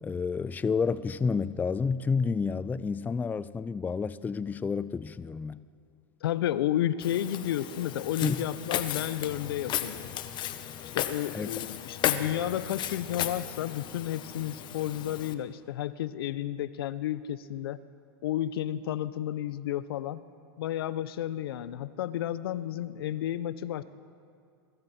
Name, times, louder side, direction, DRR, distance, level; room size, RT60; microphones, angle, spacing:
voice 1, 0.0-5.6 8.2-8.4 11.3-11.5, left 5 dB, 15° left, 0.5 m, -30 dB
voice 2, 6.2-10.1 10.9-17.8 18.2-20.2 20.6-23.8, left 12 dB, 70° left, 0.9 m, -32 dB
Walk footsteps, 7.0-15.3, left 11 dB, 35° left, 1.4 m, -35 dB
27.0 x 24.0 x 4.5 m
hypercardioid pair, 105°, 13 cm